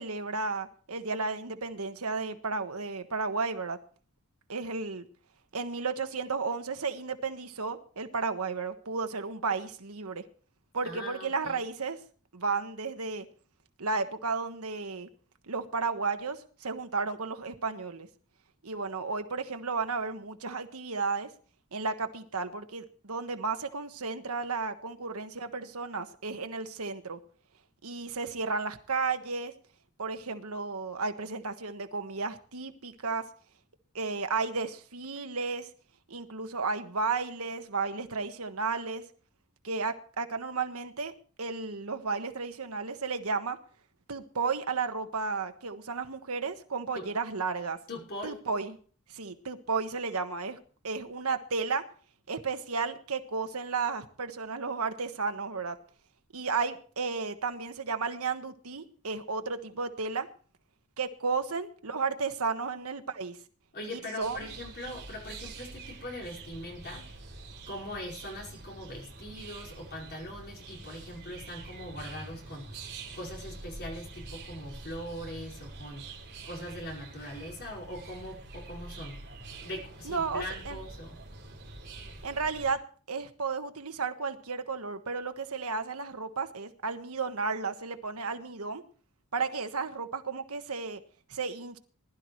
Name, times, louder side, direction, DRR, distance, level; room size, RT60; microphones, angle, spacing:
voice 1, 0.0-3.8 4.5-5.1 5.5-10.2 10.7-12.0 12.3-13.3 13.8-15.1 15.5-18.1 18.6-21.3 21.7-27.2 27.8-29.5 30.0-33.2 33.9-35.7 36.1-39.0 39.6-41.1 41.4-43.6 44.1-47.8 48.2-48.8 49.1-50.6 50.8-51.8 52.3-55.8 56.3-60.3 61.0-63.4 63.9-64.5 80.0-80.8 82.2-82.8 83.1-88.8 89.3-91.0 91.3-91.8, right 4 dB, 75° right, 8 dB, 1.4 m, -33 dB
voice 2, 10.8-11.6 46.9-47.1 47.9-48.4 63.7-67.1 67.7-72.8 73.1-76.1 76.4-79.2 79.5-81.2, left 1 dB, 50° left, -2 dB, 5.3 m, -41 dB
sound 1, 64.2-82.7, right 3 dB, 50° right, 3.8 m, -46 dB
20.5 x 12.0 x 3.2 m, 0.42 s
head